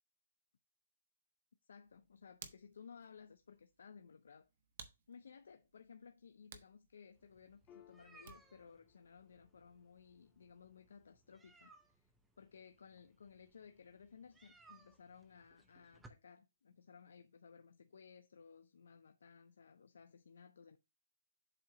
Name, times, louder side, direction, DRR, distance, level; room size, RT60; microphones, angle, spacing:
voice 1, 1.6-4.5 5.1-12.1 12.4-20.8, left 6 dB, 85° left, 0.6 m, -59 dB
Hands, 1.8-8.7, right 6 dB, 45° right, 1.1 m, -60 dB
sound 1, 7.1-16.1, right 3 dB, 5° right, 0.6 m, -66 dB
Piano, 7.7-14.6, left 10 dB, 20° left, 0.9 m, -71 dB
7.6 x 2.9 x 5.9 m
hypercardioid pair, 170°, 0 cm